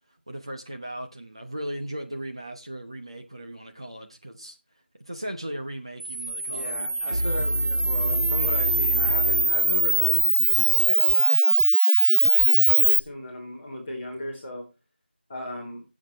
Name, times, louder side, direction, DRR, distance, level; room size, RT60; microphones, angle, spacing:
voice 1, 0.3-4.6 5.0-7.4, right 1 dB, 30° right, 0.9 m, -37 dB
Camera, 6.0-13.0, right 2 dB, 85° right, 0.5 m, -21 dB
voice 2, 6.5-10.4 10.8-11.7 12.3-14.6 15.3-15.8, left 1 dB, 5° left, 1.2 m, -35 dB
sound 1, 7.1-11.0, equal, 65° right, 2.6 m, -29 dB
14.5 x 7.4 x 3.1 m
figure-of-eight pair, 180°, 6 cm